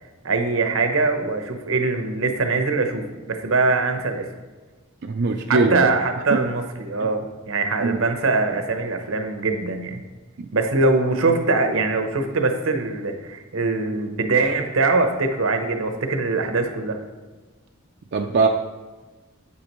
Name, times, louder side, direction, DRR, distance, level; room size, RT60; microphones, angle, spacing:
voice 1, 0.2-4.3 5.5-10.0 10.5-17.0, right 3 dB, 80° right, 6 dB, 0.9 m, -22 dB
voice 2, 5.0-5.9 6.3-6.4 7.8-8.0 10.4-10.5 18.1-18.5, right 3 dB, 55° right, 3 dB, 0.5 m, -21 dB
8.5 x 8.0 x 3.1 m, 1.3 s
head